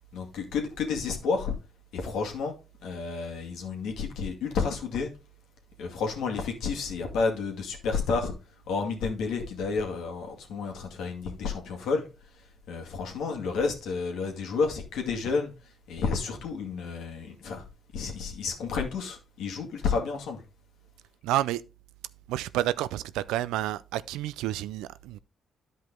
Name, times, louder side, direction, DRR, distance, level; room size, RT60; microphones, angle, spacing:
voice 1, 0.1-1.6 1.9-2.5 2.8-5.1 5.8-8.3 8.7-12.0 12.7-15.5 15.9-17.6 17.9-20.4, left 4 dB, 80° left, 2.2 m, -30 dB
voice 2, 21.2-21.6 22.3-25.2, right 14 dB, 90° right, 0.3 m, -29 dB
10.5 x 5.2 x 3.6 m
supercardioid pair, 60°, 0 cm